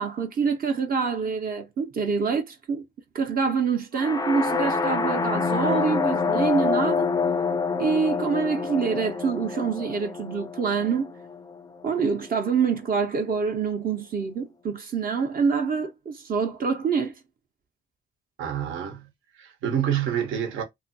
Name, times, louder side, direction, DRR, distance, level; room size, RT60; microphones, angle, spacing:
voice 1, 0.0-2.9 3.1-7.1 7.8-11.1 11.8-17.1, right 5 dB, 45° right, 0.6 m, -26 dB
sound 1, 4.0-11.8, left 4 dB, 20° left, 0.3 m, -27 dB
voice 2, 18.4-19.1 19.4-20.6, right 9 dB, 85° right, 0.9 m, -27 dB
2.6 x 2.4 x 2.6 m
cardioid pair, 90°, 20 cm